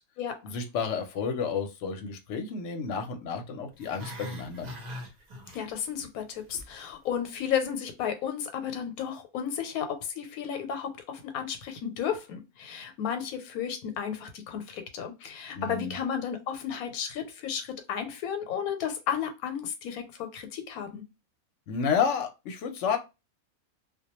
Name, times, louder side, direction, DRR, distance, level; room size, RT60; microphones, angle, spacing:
voice 1, 0.4-4.7 15.5-16.0 21.7-23.0, left 6 dB, 65° left, 0.8 m, -31 dB
Growling, 3.7-6.1 6.3-6.7 7.1-7.2, equal, 45° right, 0.5 m, -41 dB
voice 2, 5.5-21.0, left 8 dB, 85° left, 1.1 m, -33 dB
2.3 x 2.2 x 2.9 m
omnidirectional pair, 1.5 m